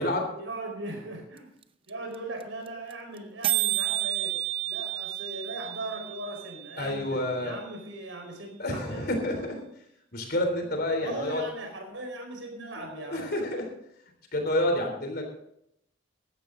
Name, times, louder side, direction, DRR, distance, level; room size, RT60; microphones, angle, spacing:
voice 1, 0.0-1.5 1.9-4.4 4.7-9.2 11.0-13.4, right 2 dB, 80° right, 3 dB, 4.8 m, -39 dB
sound 1, 1.4-1.5 1.6-1.7 1.9-2.1 2.4-2.5 2.7-2.9 3.2-3.3 3.4-7.4, right 14 dB, 30° right, 0.6 m, -31 dB
voice 2, 6.8-7.5 8.6-9.6 10.1-11.4 12.8-13.7 14.3-15.2, left 1 dB, 50° left, 4 dB, 3.6 m, -29 dB
15.5 x 12.0 x 3.9 m, 0.76 s
head